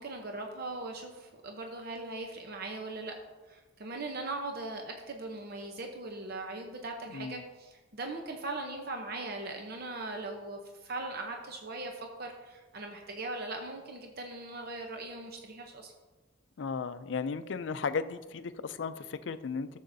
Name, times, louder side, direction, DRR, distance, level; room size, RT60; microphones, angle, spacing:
voice 1, 0.0-3.1 3.5-15.9, right 2 dB, 55° right, 3 dB, 0.8 m, -40 dB
voice 2, 7.1-7.4 16.6-19.7, left 5 dB, 70° left, 12 dB, 0.4 m, -35 dB
13.0 x 7.2 x 2.7 m, 1.2 s
head